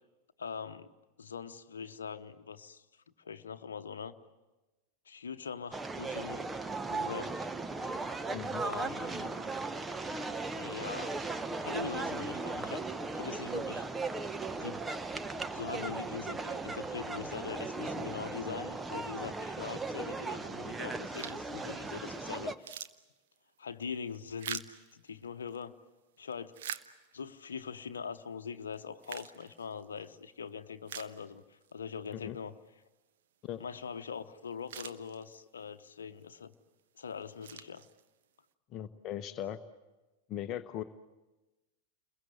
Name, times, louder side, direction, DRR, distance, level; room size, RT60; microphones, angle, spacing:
voice 1, 0.4-0.9 1.2-2.8 3.2-4.1 5.1-6.4 6.9-7.5 8.6-9.4 10.6-11.1 11.6-12.8 13.1-13.9 14.5-15.1 15.5-22.8 23.6-24.7 24.9-25.8 26.2-26.6 27.1-32.5 33.6-36.5 37.0-37.8, left 6 dB, 70° left, 8 dB, 0.9 m, -42 dB
sound 1, 5.7-22.5, right 3 dB, 10° right, 0.9 m, -37 dB
voice 2, 8.3-8.6 32.1-32.4 33.4-33.6 38.7-39.6 40.3-40.8, left 11 dB, 35° left, 10 dB, 0.9 m, -38 dB
sound 2, 21.1-21.6 22.1-22.2 22.4-25.6 26.2-27.4 27.9-28.0 28.7-30.1 30.5-30.6 30.9-31.7 32.1-32.2 34.1-34.2 34.5-35.6 36.2-36.5 37.1-38.3, right 10 dB, 55° right, 1.0 m, -45 dB
30.0 x 22.0 x 7.8 m, 1.1 s
figure-of-eight pair, 90°, 0 cm